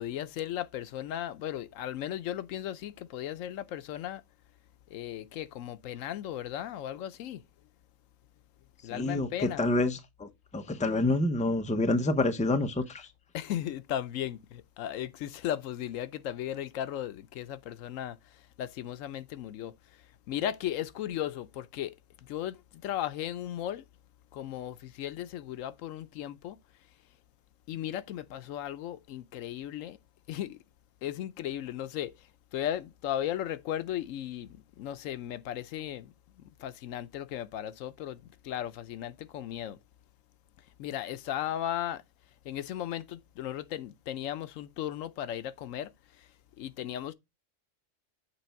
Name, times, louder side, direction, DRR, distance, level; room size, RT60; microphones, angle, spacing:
voice 1, 0.0-4.2 4.9-7.4 8.8-9.6 13.3-23.9 24.3-26.6 27.7-30.0 30.3-30.6 31.0-39.8 40.8-42.0 42.4-46.3 46.6-47.1, left 11 dB, 85° left, 1.0 m, -36 dB
voice 2, 8.9-9.3 9.6-13.1, left 2 dB, 10° left, 0.6 m, -28 dB
8.2 x 3.4 x 5.6 m
omnidirectional pair, 1.3 m